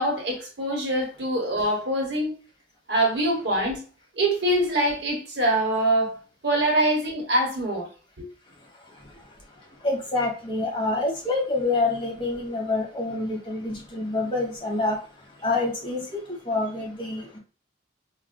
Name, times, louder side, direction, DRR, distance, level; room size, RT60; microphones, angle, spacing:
voice 1, 0.0-2.3 2.9-3.8 4.1-7.9 8.2-8.3, right 1 dB, 70° right, 1.1 m, -24 dB
voice 2, 9.8-15.0 15.4-17.4, left 2 dB, 30° left, 1.1 m, -27 dB
4.6 x 2.1 x 2.2 m
head